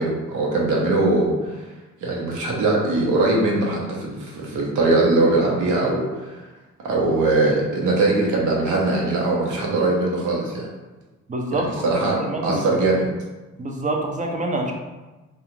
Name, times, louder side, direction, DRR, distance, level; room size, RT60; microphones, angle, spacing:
voice 1, 0.0-1.6 2.0-6.4 6.8-10.7 11.5-12.2 12.4-13.1, right 2 dB, 80° right, -2 dB, 0.8 m, -21 dB
voice 2, 11.3-12.8 13.6-14.7, right 2 dB, 25° right, 2 dB, 0.4 m, -27 dB
2.4 x 2.3 x 3.0 m, 1.2 s
cardioid pair, 90°, 30 cm